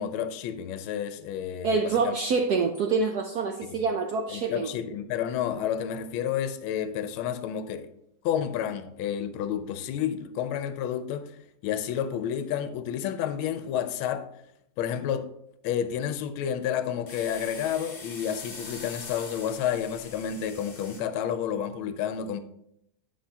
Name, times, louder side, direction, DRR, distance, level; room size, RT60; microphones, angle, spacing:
voice 1, 0.0-2.1 4.3-7.9 8.2-14.3 14.8-15.3 15.6-22.4, left 9 dB, 80° left, 1.4 m, -30 dB
voice 2, 1.6-4.7, right 4 dB, 75° right, 0.9 m, -26 dB
sound 1, 17.1-21.0, left 3 dB, 45° left, 0.5 m, -43 dB
10.0 x 5.8 x 2.8 m
omnidirectional pair, 2.4 m